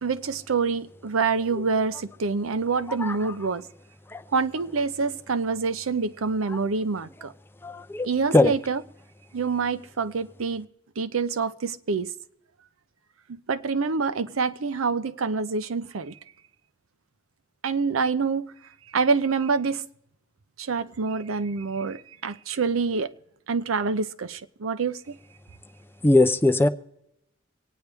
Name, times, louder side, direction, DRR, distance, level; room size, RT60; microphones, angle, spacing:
voice 1, 0.0-3.7 4.3-7.3 8.0-8.8 9.3-10.7 11.0-12.1 13.3-16.1 17.6-18.5 18.9-19.8 20.6-23.1 23.5-25.2, right 4 dB, 85° right, 0.6 m, -26 dB
voice 2, 7.6-8.1 8.3-8.5 26.0-26.7, left 2 dB, 10° left, 0.5 m, -19 dB
25.5 x 9.3 x 3.4 m
head